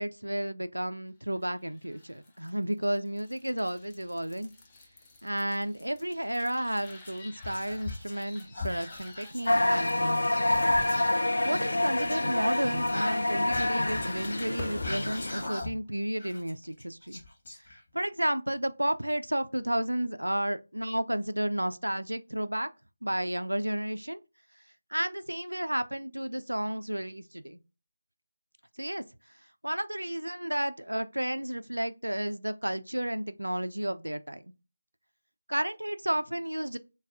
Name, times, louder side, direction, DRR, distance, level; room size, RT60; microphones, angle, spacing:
voice 1, 0.0-4.5 5.2-10.2 11.4-17.2 17.9-22.7 23.0-24.2 24.9-27.6 28.8-29.0 29.6-34.4 35.5-36.8, right 1 dB, 80° right, 0.4 m, -32 dB
sound 1, 1.3-15.0, left 2 dB, 15° left, 0.6 m, -51 dB
Whispering, 6.7-8.3 8.5-11.2 11.9-15.9 16.2-18.0, left 2 dB, 35° left, 1.2 m, -41 dB
sound 2, 9.5-15.5, left 1 dB, 60° left, 0.5 m, -27 dB
6.7 x 2.3 x 2.5 m
figure-of-eight pair, 160°, 0 cm